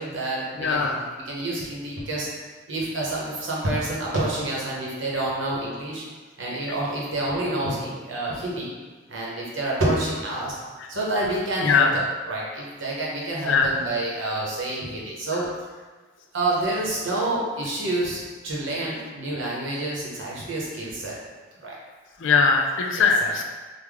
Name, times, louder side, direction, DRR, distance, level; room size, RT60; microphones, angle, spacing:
voice 1, 0.0-2.3 2.7-6.0 6.4-8.7 9.1-10.6 10.9-15.5 16.3-21.2 21.6-21.8 23.0-23.3, right 2 dB, 70° right, -4 dB, 0.9 m, -28 dB
voice 2, 0.6-1.0 11.6-11.9 13.4-13.7 22.2-23.5, left 5 dB, 70° left, 2 dB, 0.4 m, -20 dB
3.5 x 2.1 x 3.5 m, 1.4 s
head